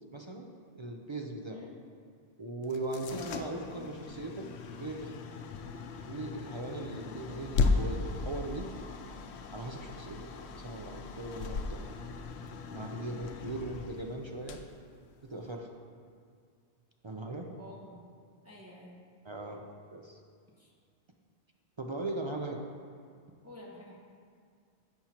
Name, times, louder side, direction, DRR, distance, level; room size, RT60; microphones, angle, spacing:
voice 1, 0.1-0.5 0.7-1.7 2.4-4.5 4.8-5.1 6.1-8.7 9.5-11.8 12.7-14.6 15.2-15.7 17.0-17.5 19.2-20.2 21.8-22.6, right 2 dB, 35° right, 2 dB, 0.5 m, -39 dB
sound 1, 2.6-15.6, left 4 dB, 90° left, 0.9 m, -37 dB
voice 2, 17.6-18.0 18.4-19.0 20.6-20.7 23.4-23.9, left 2 dB, 15° right, -5 dB, 1.2 m, -49 dB
10.5 x 7.6 x 2.9 m, 2.2 s
omnidirectional pair, 1.1 m